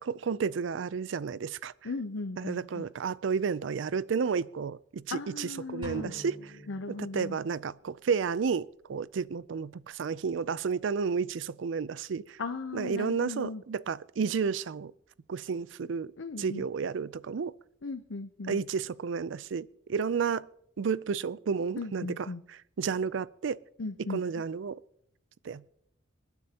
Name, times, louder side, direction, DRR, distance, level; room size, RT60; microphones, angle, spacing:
voice 1, 0.0-1.7 2.4-6.5 6.9-12.4 12.7-14.9 15.3-16.1 16.4-17.5 18.5-20.4 20.8-23.6 24.1-24.8 25.4-25.7, right 5 dB, 80° right, 0.4 m, -32 dB
voice 2, 1.8-2.8 5.1-6.1 6.7-7.4 12.4-13.6 16.2-16.6 17.8-18.6 21.8-22.4 23.8-24.2, left 3 dB, 85° left, 0.7 m, -37 dB
sound 1, 5.8-7.6, equal, 25° right, 7.0 m, -46 dB
28.0 x 9.6 x 2.9 m
head